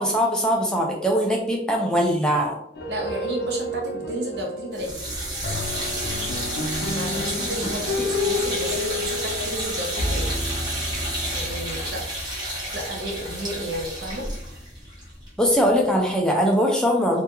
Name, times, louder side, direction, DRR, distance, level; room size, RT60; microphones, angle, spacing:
voice 1, 0.0-2.6 8.0-8.1 15.4-17.2, equal, 5° left, 0 dB, 0.3 m, -21 dB
sound 1, 2.7-12.1, left 1 dB, 60° left, 0.5 m, -30 dB
voice 2, 2.9-4.9 6.9-10.3 11.3-12.0 12.7-14.3, right 1 dB, 70° right, 0 dB, 0.7 m, -32 dB
sound 2, 4.7-15.8, right 1 dB, 25° right, 0.8 m, -31 dB
2.3 x 2.1 x 2.9 m, 0.69 s
head